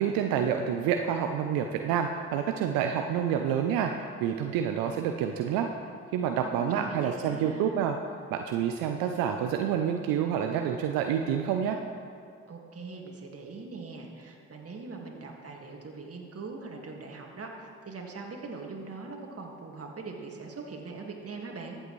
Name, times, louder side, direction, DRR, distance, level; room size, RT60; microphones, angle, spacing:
voice 1, 0.0-3.9 4.2-5.7 6.1-8.0 8.3-11.8, right 8 dB, 85° right, 5 dB, 0.5 m, -28 dB
voice 2, 6.4-7.8 12.5-21.8, right 3 dB, 45° right, 1 dB, 1.9 m, -41 dB
14.5 x 7.8 x 3.1 m, 2.4 s
hypercardioid pair, 50°, 34 cm